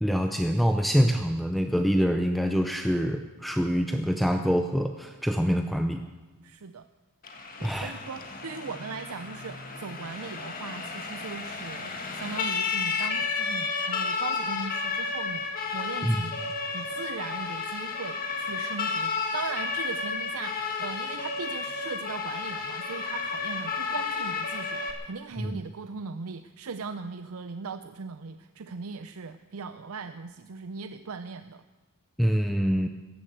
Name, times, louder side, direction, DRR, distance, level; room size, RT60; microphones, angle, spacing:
voice 1, 0.0-6.0 7.6-7.9 16.0-16.2 25.4-25.6 32.2-32.9, equal, ahead, 5 dB, 0.6 m, -25 dB
voice 2, 6.4-6.9 7.6-31.6, right 5 dB, 75° right, 10 dB, 0.6 m, -39 dB
Siren, 7.2-24.9, left 4 dB, 40° left, 1.7 m, -32 dB
15.5 x 11.0 x 8.0 m, 1.2 s
head